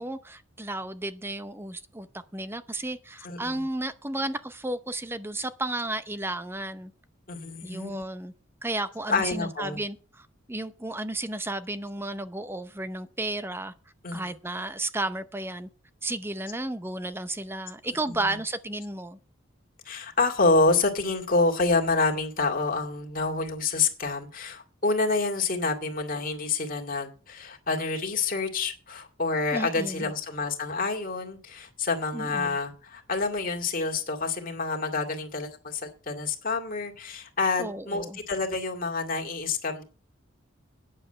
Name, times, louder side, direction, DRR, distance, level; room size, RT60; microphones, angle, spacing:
voice 1, 0.0-2.1 2.3-6.9 7.6-8.3 8.6-13.7 14.1-15.7 16.0-19.2 29.5-30.1 32.1-32.6 37.6-38.2, right 2 dB, 10° right, 0.6 m, -33 dB
voice 2, 3.2-3.6 7.3-8.0 9.1-9.8 14.0-14.2 18.1-18.4 19.9-39.8, left 3 dB, 45° left, 2.2 m, -28 dB
9.5 x 7.3 x 6.6 m
head